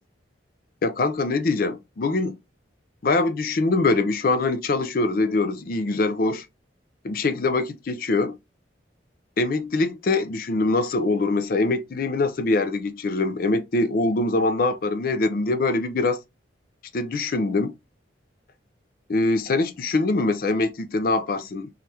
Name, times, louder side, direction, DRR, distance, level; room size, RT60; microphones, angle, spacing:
voice 1, 0.8-2.4 3.0-6.5 7.0-8.4 9.4-16.2 16.9-17.7 19.1-21.7, left 3 dB, 50° left, 0.4 m, -23 dB
3.2 x 2.4 x 2.8 m
head